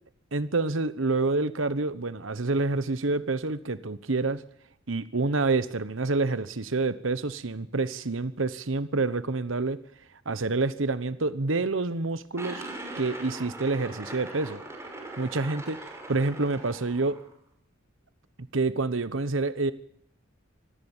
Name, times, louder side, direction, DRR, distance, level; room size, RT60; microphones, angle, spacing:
voice 1, 0.3-4.4 4.9-9.8 10.3-12.6 13.0-14.6 15.2-17.2 18.5-19.7, right 3 dB, 70° right, 14 dB, 1.1 m, -28 dB
sound 1, 12.4-17.3, right 2 dB, 15° right, 5.9 m, -41 dB
26.0 x 19.0 x 7.3 m, 0.69 s
head